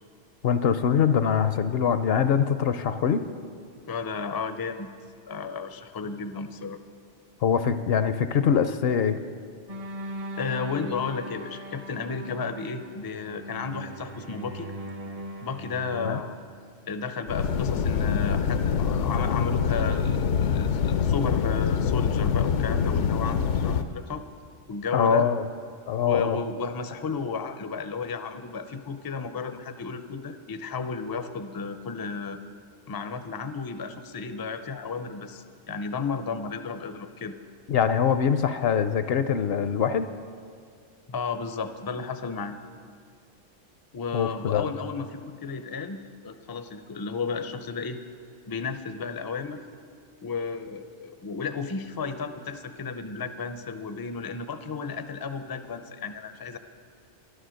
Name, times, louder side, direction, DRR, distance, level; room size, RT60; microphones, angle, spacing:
voice 1, 0.4-3.2 7.4-9.2 16.0-16.2 24.9-25.4 25.9-26.4 37.7-40.1 44.1-44.7, left 7 dB, 65° left, 11 dB, 0.7 m, -23 dB
voice 2, 3.9-4.9 5.3-6.8 10.4-14.7 15.4-16.4 16.9-24.2 24.7-25.3 26.0-32.4 32.9-37.4 41.1-42.6 43.9-48.0 48.5-49.6 50.2-56.6, left 5 dB, 35° left, 9 dB, 0.4 m, -33 dB
sound 1, 9.7-16.2, equal, 40° right, 0.6 m, -39 dB
sound 2, 17.3-23.8, left 6 dB, 85° left, 1.0 m, -25 dB
11.5 x 11.5 x 6.4 m, 2.2 s
omnidirectional pair, 1.2 m